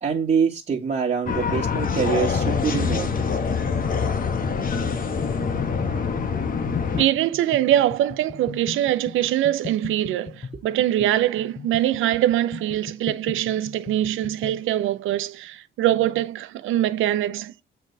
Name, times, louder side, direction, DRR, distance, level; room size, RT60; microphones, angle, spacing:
voice 1, 0.0-3.1, right 6 dB, 40° right, 1.8 m, -24 dB
sound 1, 1.3-7.0, left 5 dB, 45° left, 1.2 m, -25 dB
sound 2, 2.4-14.6, left 6 dB, 25° left, 0.7 m, -37 dB
voice 2, 7.0-17.6, right 12 dB, 85° right, 0.8 m, -23 dB
7.4 x 4.7 x 5.4 m
cardioid pair, 90°, 20 cm